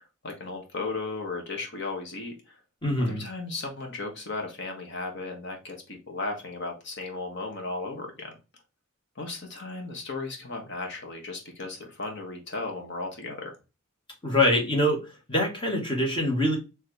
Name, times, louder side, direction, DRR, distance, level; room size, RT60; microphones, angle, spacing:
voice 1, 0.0-2.6 3.0-8.4 9.1-13.5, left 3 dB, 55° left, 2 dB, 1.3 m, -35 dB
voice 2, 2.8-3.2 14.2-15.0 15.3-16.6, left 1 dB, 25° left, 0 dB, 1.5 m, -24 dB
4.4 x 3.1 x 3.2 m, 0.28 s
head